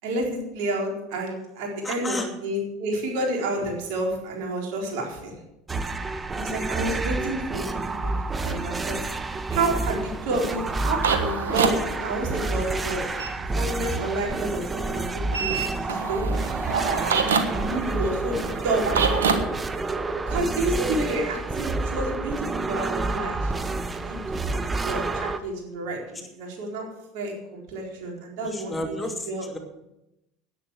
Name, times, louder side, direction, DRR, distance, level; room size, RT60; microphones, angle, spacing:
voice 1, 0.0-5.4 6.3-8.1 8.4-9.0 9.5-13.0 13.5-15.5 15.8-16.3 17.5-18.9 20.2-23.8 24.0-29.0 29.3-29.5, right 1 dB, 65° right, 0 dB, 4.2 m, -30 dB
voice 2, 1.8-2.3 28.4-29.6, left 1 dB, 15° left, 3 dB, 2.7 m, -32 dB
sound 1, 5.7-25.4, right 3 dB, 20° right, 1.0 m, -29 dB
sound 2, 10.3-13.3 15.3-19.4, right 5 dB, 85° right, 1.4 m, -27 dB
10.5 x 9.9 x 7.4 m, 0.87 s
hypercardioid pair, 80°, 0 cm